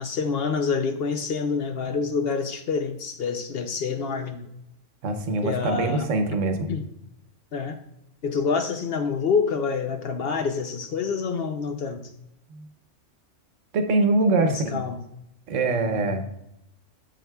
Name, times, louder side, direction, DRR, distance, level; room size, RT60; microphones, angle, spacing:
voice 1, 0.0-4.5 5.4-6.1 6.7-6.8 7.5-7.8 8.2-12.1 14.4-15.0 15.7-16.0, left 5 dB, 60° left, 7 dB, 0.7 m, -27 dB
voice 2, 5.0-6.7 12.5-12.7 13.7-14.8 15.5-16.3, right 2 dB, 80° right, 7 dB, 1.2 m, -23 dB
7.5 x 6.9 x 2.2 m, 0.82 s
omnidirectional pair, 1.3 m